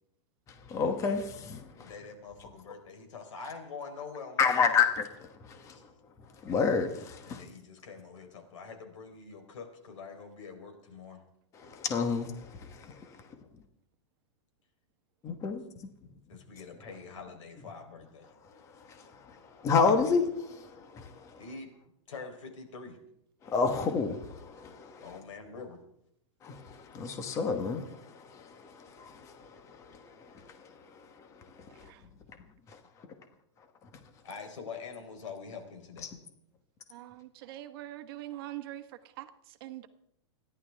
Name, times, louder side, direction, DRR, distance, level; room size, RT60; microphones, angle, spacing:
voice 1, 0.7-1.9 4.4-5.8 6.4-7.4 11.5-13.1 15.2-15.6 18.9-21.3 23.4-25.1 26.4-30.6 31.6-31.9 36.1-36.2, left 5 dB, 20° left, 7 dB, 1.2 m, -30 dB
voice 2, 1.8-4.9 5.7-5.8 7.2-11.2 16.3-18.3 21.4-21.7 22.1-23.0 25.0-25.8 34.2-36.1, left 5 dB, 85° left, 5 dB, 4.0 m, -45 dB
voice 3, 31.7-32.0 36.9-38.9 39.2-39.9, right 14 dB, 50° right, 8 dB, 1.3 m, -43 dB
30.0 x 11.5 x 3.5 m, 0.73 s
supercardioid pair, 165°, 16 cm